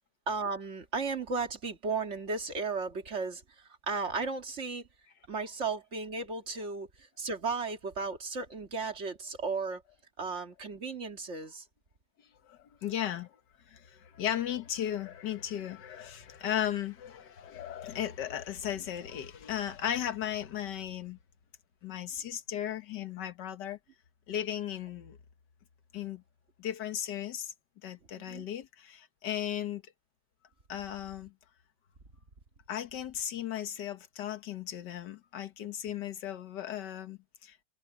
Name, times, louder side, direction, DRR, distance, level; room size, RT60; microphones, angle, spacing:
voice 1, 0.3-4.9 5.3-9.8 10.2-11.7 28.2-28.5, right 4 dB, 40° right, 2.2 m, -35 dB
voice 2, 12.4-13.4 13.7-21.2 21.8-23.8 24.3-25.2 25.9-26.2 26.6-27.5 27.8-29.8 30.7-31.3 32.7-37.6, left 10 dB, 70° left, 1.8 m, -36 dB
omnidirectional pair, 2.0 m